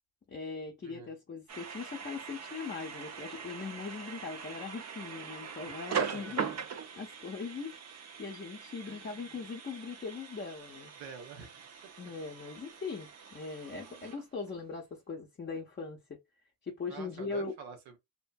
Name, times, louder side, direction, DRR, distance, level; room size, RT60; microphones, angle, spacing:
voice 1, 0.3-6.5 7.0-7.7 8.2-10.9 12.0-16.2 16.6-17.5, left 4 dB, 25° left, 0.6 m, -40 dB
sound 1, 1.5-14.6, right 6 dB, 40° right, 0.4 m, -41 dB
voice 2, 5.7-6.1 8.9-9.4 11.0-11.6 13.8-14.1 16.9-18.0, right 6 dB, 80° right, 0.9 m, -48 dB
2.8 x 2.5 x 2.2 m
cardioid pair, 85°, 46 cm